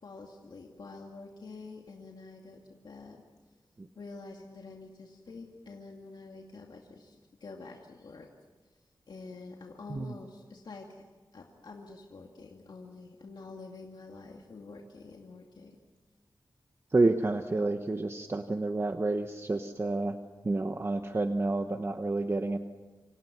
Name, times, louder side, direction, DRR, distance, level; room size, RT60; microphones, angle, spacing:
voice 1, 0.0-3.2 3.9-8.3 9.1-11.0 11.3-15.8 17.0-17.1, left 3 dB, 70° left, 1 dB, 2.3 m, -47 dB
voice 2, 16.9-20.2 20.4-22.6, right 2 dB, 35° right, 7 dB, 1.1 m, -29 dB
27.5 x 26.5 x 6.1 m, 1.3 s
wide cardioid pair, 110°, 8 cm